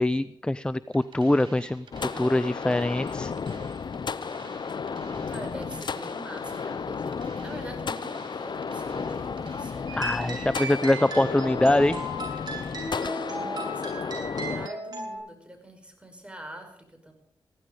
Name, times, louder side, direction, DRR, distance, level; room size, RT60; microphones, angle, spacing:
voice 1, 0.0-1.8 2.2-3.3 10.0-12.0, left 1 dB, 10° left, 17 dB, 0.5 m, -23 dB
sound 1, 0.9-12.9, right 3 dB, 80° right, 4.8 m, -49 dB
sound 2, 1.9-14.7, left 5 dB, 60° left, 0.6 m, -33 dB
voice 2, 5.3-11.1 13.2-17.1, right 1 dB, 15° right, 4 dB, 5.3 m, -43 dB
sound 3, 9.9-15.2, right 1 dB, 50° right, 7.5 m, -36 dB
15.5 x 12.5 x 5.3 m, 0.77 s
cardioid pair, 45°, 9 cm